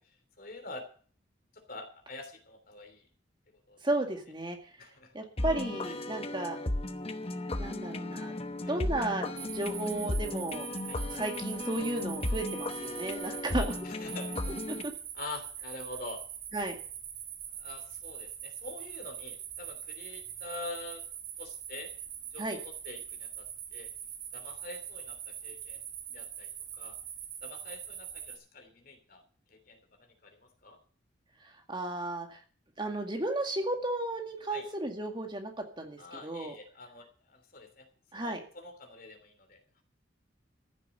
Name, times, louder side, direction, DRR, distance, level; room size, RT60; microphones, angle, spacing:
voice 1, 0.4-0.8 1.5-3.0 3.7-3.8 4.8-5.1 5.9-6.0 8.6-8.7 10.9-11.0 13.5-14.6 15.1-16.2 17.6-21.0 21.4-21.9 22.3-23.9 24.3-25.8 26.1-26.5 26.8-27.0 27.4-29.2 29.5-30.8 34.5-34.7 36.0-37.9 38.1-39.8, left 2 dB, 50° left, 6 dB, 3.2 m, -46 dB
voice 2, 3.8-4.6 5.1-6.6 7.6-8.3 8.7-10.7 11.1-13.9 14.7-14.9 16.5-16.7 22.4-22.6 31.4-32.4 32.8-36.5 38.1-38.4, right 1 dB, 25° right, 3 dB, 2.0 m, -34 dB
sound 1, 5.4-14.8, left 1 dB, 30° left, 0.9 m, -35 dB
sound 2, 9.4-28.4, right 9 dB, 80° right, 3.4 m, -43 dB
14.5 x 7.5 x 8.1 m, 0.44 s
head